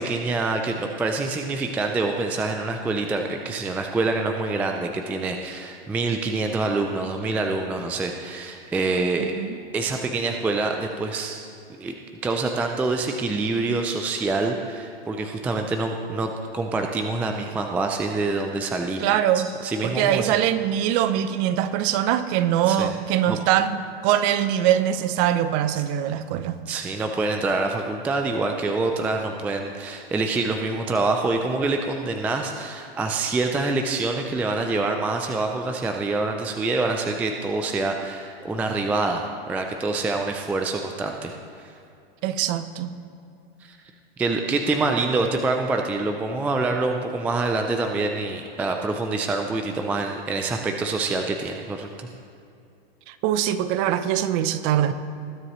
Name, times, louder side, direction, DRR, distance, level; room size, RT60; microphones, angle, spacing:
voice 1, 0.0-9.3 9.7-11.5 11.8-11.9 12.2-19.1 19.3-20.3 22.7-22.9 23.3-23.4 26.7-41.7 43.6-43.8 44.2-52.1, right 3 dB, 5° right, 4 dB, 0.3 m, -26 dB
voice 2, 9.2-9.6 19.0-19.5 19.8-26.6 42.2-42.9 53.1-54.9, right 11 dB, 40° right, 12 dB, 0.7 m, -23 dB
20.0 x 9.8 x 3.1 m, 2.6 s
hypercardioid pair, 125°, 31 cm